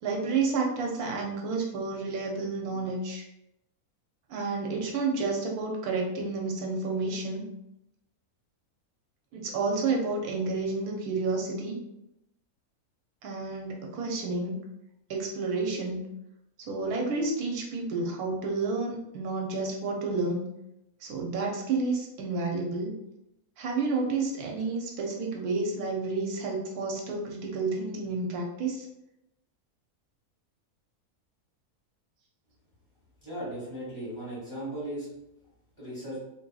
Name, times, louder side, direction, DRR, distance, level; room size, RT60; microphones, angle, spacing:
voice 1, 0.0-3.3 4.3-7.4 9.3-11.8 13.2-14.6 15.1-16.0 16.6-20.4 21.0-22.9 23.6-28.9, right 3 dB, 85° right, 0 dB, 1.1 m, -30 dB
voice 2, 33.2-35.1 35.8-36.2, right 1 dB, 20° left, -9 dB, 1.2 m, -37 dB
2.8 x 2.7 x 2.3 m, 0.84 s
omnidirectional pair, 1.6 m